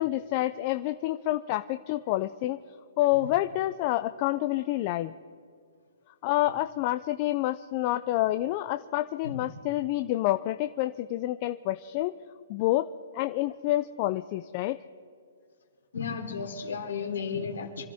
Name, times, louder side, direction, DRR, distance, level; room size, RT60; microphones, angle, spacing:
voice 1, 0.0-2.6 3.0-5.1 6.2-12.1 12.5-12.9 13.1-14.8, left 15 dB, 30° left, 10 dB, 0.4 m, -28 dB
voice 2, 15.9-17.9, left 6 dB, 85° left, 2 dB, 3.1 m, -33 dB
26.5 x 13.0 x 3.5 m, 2.3 s
hypercardioid pair, 165°, 0 cm